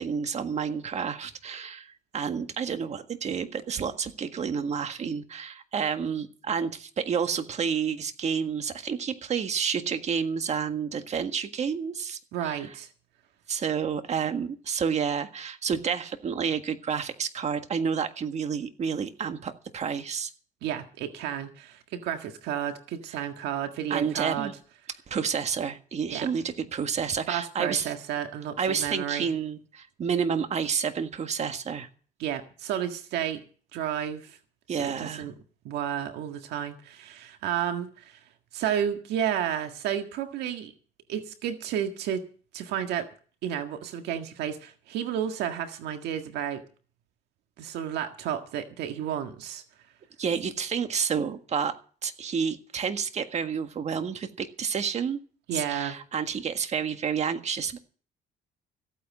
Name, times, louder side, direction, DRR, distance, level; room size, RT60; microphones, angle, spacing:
voice 1, 0.0-12.7 13.5-20.3 23.9-24.5 25.1-27.9 28.6-31.9 34.7-35.2 50.2-51.7 52.0-55.2 55.5-57.8, right 6 dB, 40° right, 8 dB, 1.6 m, -30 dB
voice 2, 12.3-12.9 20.6-24.5 26.1-26.3 27.3-29.3 32.2-33.4 33.7-34.4 34.7-35.3 35.6-38.2 38.5-40.7 41.1-42.2 42.5-43.1 43.4-46.6 47.6-49.6 55.5-56.0, right 9 dB, 80° right, 6 dB, 1.7 m, -31 dB
15.0 x 9.2 x 7.4 m, 0.40 s
cardioid pair, 110°, 17 cm